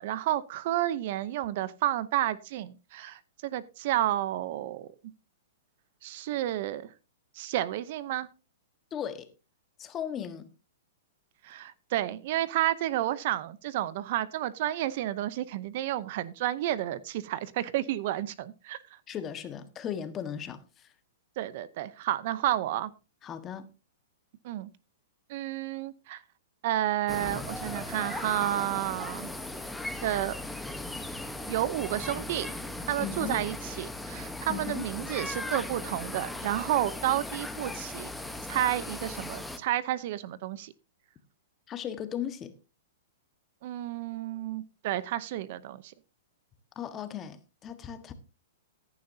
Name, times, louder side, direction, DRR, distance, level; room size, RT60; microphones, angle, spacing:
voice 1, 0.0-4.9 6.0-6.9 7.4-8.3 11.4-19.0 21.4-22.9 24.4-24.7 25.3-26.2 26.6-29.3 30.0-30.3 31.5-32.5 32.9-38.1 38.5-40.7 43.6-45.9, right 13 dB, 50° right, 0.7 m, -31 dB
voice 2, 8.9-9.3 9.8-10.5 19.1-20.9 23.2-23.7 33.0-33.4 34.5-34.9 41.7-42.5 46.7-48.1, left 9 dB, 20° left, 1.4 m, -37 dB
sound 1, 27.1-39.6, left 2 dB, 5° left, 1.0 m, -38 dB
15.0 x 10.5 x 2.8 m
hypercardioid pair, 145°, 0 cm